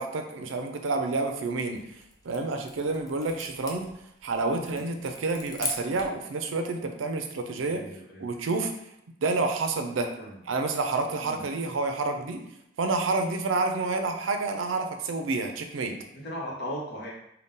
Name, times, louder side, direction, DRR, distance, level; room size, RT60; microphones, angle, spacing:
voice 1, 0.0-2.0 2.2-3.9 4.2-7.9 8.2-8.7 9.2-10.1 10.5-12.4 12.8-16.0, right 3 dB, 85° right, 5 dB, 0.5 m, -29 dB
sound 1, 1.6-6.2, left 2 dB, 20° left, 0.5 m, -40 dB
voice 2, 7.7-8.2 10.2-10.4 11.2-11.4 16.1-17.1, equal, 55° left, -4 dB, 1.0 m, -37 dB
3.6 x 2.2 x 3.9 m, 0.78 s
head